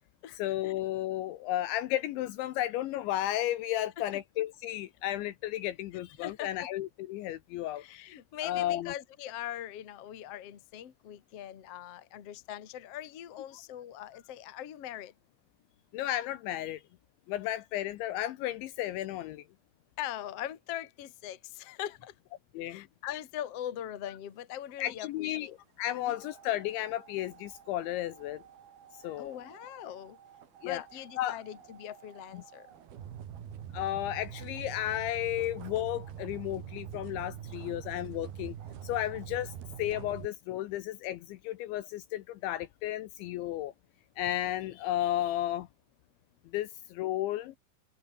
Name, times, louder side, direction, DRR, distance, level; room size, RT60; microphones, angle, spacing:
voice 1, 0.3-7.8 8.4-8.9 13.5-13.6 15.9-16.8 17.3-19.4 22.5-22.9 24.8-28.4 29.0-29.4 30.6-30.9 31.2-31.4 32.3-32.4 33.7-38.6 38.8-43.7 44.2-45.7 46.5-47.6, left 14 dB, 75° left, 3.0 m, -33 dB
voice 2, 6.2-6.7 7.8-15.1 20.0-22.1 22.7-25.5 26.0-26.2 29.2-30.2 30.6-32.7, left 11 dB, 50° left, 1.9 m, -41 dB
sound 1, 25.9-40.3, right 9 dB, 55° right, 3.7 m, -46 dB
open air
omnidirectional pair, 5.9 m